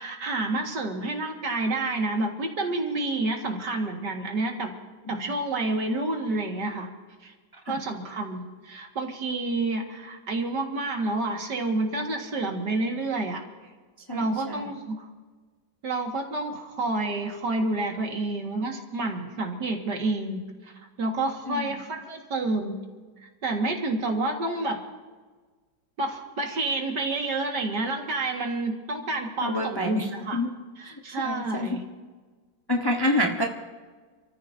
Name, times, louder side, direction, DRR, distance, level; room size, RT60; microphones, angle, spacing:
voice 1, 0.0-4.7 5.1-6.9 7.2-7.3 7.7-13.4 14.1-15.1 15.8-22.8 23.4-24.8 26.0-30.4 30.8-31.8 32.8-32.9, right 2 dB, 65° right, 2 dB, 2.4 m, -29 dB
voice 2, 14.1-14.7 21.5-21.7 29.4-30.1 30.3-30.5 31.2-31.8 32.7-33.5, left 1 dB, 15° left, 2 dB, 1.0 m, -27 dB
28.5 x 14.5 x 2.7 m, 1.4 s
omnidirectional pair, 1.9 m